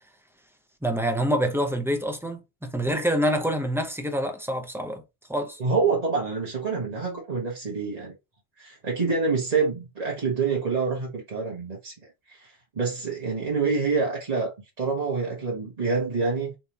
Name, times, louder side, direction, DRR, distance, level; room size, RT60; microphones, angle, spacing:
voice 1, 0.8-5.0 5.3-5.6, equal, 5° right, 0.5 m, -26 dB
voice 2, 5.6-8.1 8.6-11.9 12.3-16.5, right 4 dB, 40° right, 1.2 m, -27 dB
4.3 x 3.3 x 2.8 m
omnidirectional pair, 1.1 m